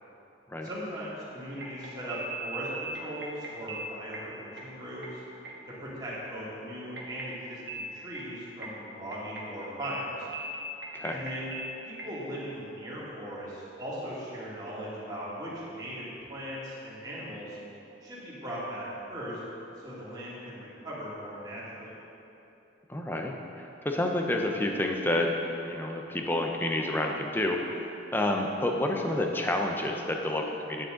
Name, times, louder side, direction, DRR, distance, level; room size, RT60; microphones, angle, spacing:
voice 1, 0.6-2.7 3.0-5.2 5.8-10.3 11.1-11.5 11.8-17.6 18.0-19.4 19.8-22.0, equal, 20° right, -8 dB, 2.3 m, -39 dB
sound 1, 1.5-12.2, right 1 dB, 60° right, 1.4 m, -40 dB
voice 2, 22.9-27.6 28.1-30.9, left 1 dB, 10° left, 2 dB, 0.7 m, -29 dB
9.6 x 8.9 x 3.8 m, 2.9 s
head